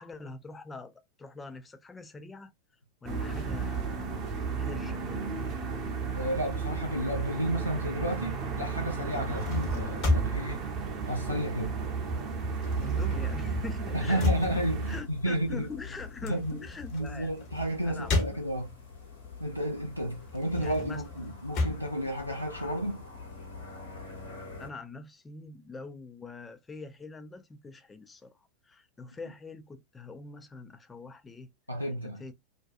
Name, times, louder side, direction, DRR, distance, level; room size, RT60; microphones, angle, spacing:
voice 1, 0.0-2.5 3.0-4.0 4.6-5.3 9.3-9.4 12.8-17.3 17.8-18.4 20.6-21.0 24.6-31.5 31.9-32.3, left 3 dB, 15° left, 0.4 m, -44 dB
sound 1, 3.0-15.0, right 5 dB, 35° right, 0.7 m, -33 dB
voice 2, 6.1-10.7 11.1-11.7 13.9-15.7 16.2-16.6 16.9-18.7 19.4-23.0 31.7-32.2, right 1 dB, 90° right, 0.5 m, -32 dB
sound 2, 9.1-11.9 12.1-19.0 19.4-23.0, left 2 dB, 40° left, 0.9 m, -33 dB
sound 3, 14.3-24.7, left 4 dB, 70° left, 1.1 m, -46 dB
2.5 x 2.3 x 2.4 m
figure-of-eight pair, 90°, 0 cm